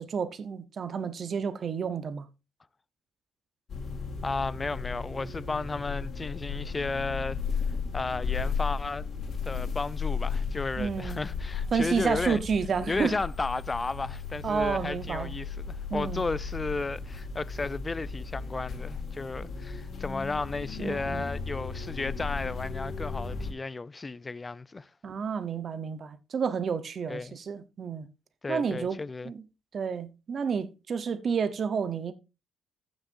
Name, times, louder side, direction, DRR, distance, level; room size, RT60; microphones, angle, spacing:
voice 1, 0.0-2.3 10.8-11.2 11.7-13.2 14.4-15.3 15.9-16.2 20.8-21.2 25.0-28.1 28.5-29.0 29.2-29.4 29.7-32.1, right 6 dB, 50° right, 0.9 m, -30 dB
sound 1, 3.7-23.5, left 5 dB, 55° left, 2.1 m, -35 dB
voice 2, 4.2-7.4 7.9-9.1 9.4-12.4 12.9-24.9 27.1-27.3 28.4-29.3, left 3 dB, 25° left, 0.4 m, -33 dB
15.0 x 6.3 x 2.6 m
cardioid pair, 90°, 0 cm